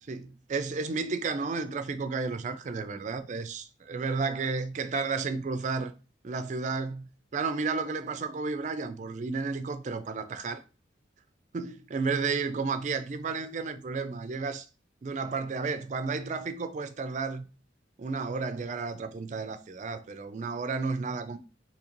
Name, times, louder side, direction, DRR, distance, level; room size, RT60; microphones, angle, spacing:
voice 1, 0.1-5.9 6.2-10.6 11.5-14.7 15.0-17.4 18.0-21.4, right 4 dB, 40° right, 0.3 m, -32 dB
3.8 x 2.8 x 2.9 m
head